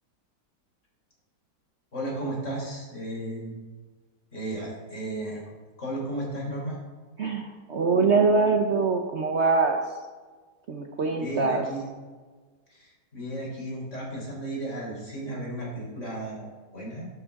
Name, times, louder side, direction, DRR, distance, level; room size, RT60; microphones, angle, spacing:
voice 1, 1.9-3.5 4.3-5.4 5.8-6.8 11.2-11.9 12.7-16.5 16.7-17.1, right 1 dB, 45° left, -4 dB, 4.5 m, -34 dB
voice 2, 7.2-9.8 10.7-11.6, right 4 dB, 50° right, 3 dB, 1.0 m, -23 dB
14.5 x 11.5 x 3.7 m, 1.4 s
omnidirectional pair, 1.8 m